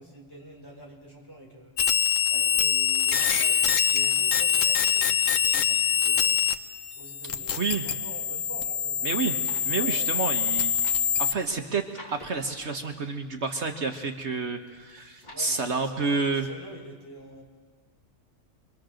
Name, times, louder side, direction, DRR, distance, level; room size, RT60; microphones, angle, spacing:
voice 1, 0.0-6.4 7.0-10.3 15.3-17.4, right 1 dB, 15° left, -1 dB, 4.8 m, -46 dB
sound 1, 1.8-6.5 6.8-11.3, left 8 dB, 80° left, 1.3 m, -24 dB
voice 2, 7.5-7.9 9.0-9.4 9.6-10.9 11.2-11.8 12.1-16.5, right 4 dB, 60° right, 4 dB, 1.6 m, -29 dB
sound 2, 9.0-9.7 10.5-12.5 13.5-14.1 14.7-15.5 16.0-16.1, left 1 dB, 35° left, 2.9 m, -49 dB
28.0 x 23.0 x 6.5 m, 1.5 s
omnidirectional pair, 1.3 m